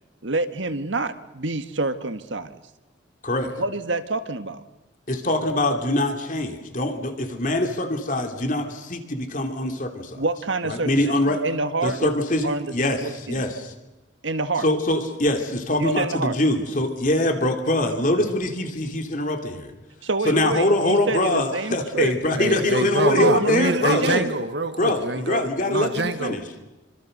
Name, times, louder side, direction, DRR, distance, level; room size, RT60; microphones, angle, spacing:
voice 1, 0.2-2.5 3.4-4.6 10.2-12.1 12.4-12.7 13.0-13.4 14.2-14.7 15.8-16.4 20.0-22.1 23.0-24.3, right 3 dB, 80° right, 10 dB, 1.7 m, -27 dB
voice 2, 5.1-10.2 10.6-11.4 11.8-13.7 14.6-19.7 20.2-24.2 24.8-25.9 26.2-26.4, left 1 dB, 45° left, 5 dB, 2.9 m, -23 dB
voice 3, 22.3-26.6, right 2 dB, 65° right, 9 dB, 1.7 m, -26 dB
27.0 x 25.5 x 6.7 m, 1.1 s
head